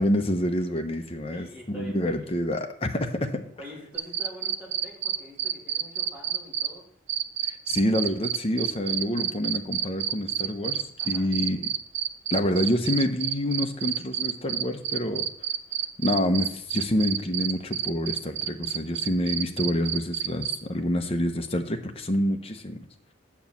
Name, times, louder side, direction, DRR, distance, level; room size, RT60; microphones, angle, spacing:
voice 1, 0.0-3.4 7.4-11.7 12.3-15.3 16.0-22.8, left 1 dB, 30° left, 5 dB, 0.8 m, -27 dB
voice 2, 1.3-2.4 3.6-6.9 11.0-11.3, equal, 5° right, -5 dB, 2.8 m, -45 dB
sound 1, 3.9-6.7 7.1-20.5, right 10 dB, 55° right, 0.5 m, -28 dB
9.2 x 4.7 x 7.2 m, 0.68 s
head